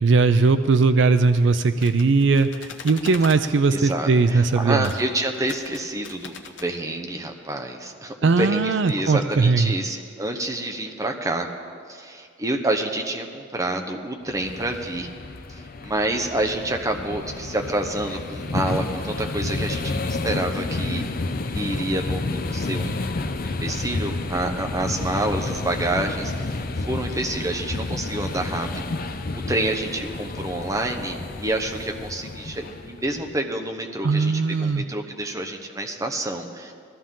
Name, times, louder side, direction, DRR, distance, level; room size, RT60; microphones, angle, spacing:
voice 1, 0.0-4.9 8.2-9.7 34.0-34.8, right 4 dB, 65° right, 11 dB, 0.5 m, -19 dB
sound 1, 1.6-3.4 4.8-5.0 5.3-6.7, left 5 dB, 70° left, 1.0 m, -40 dB
voice 2, 3.7-11.5 11.9-15.1 15.5-21.1 21.5-26.6 26.9-36.7, right 1 dB, 15° right, 3 dB, 1.0 m, -28 dB
sound 2, 14.3-33.4, left 2 dB, 45° left, 0.6 m, -30 dB
20.0 x 14.0 x 3.8 m, 2.3 s
head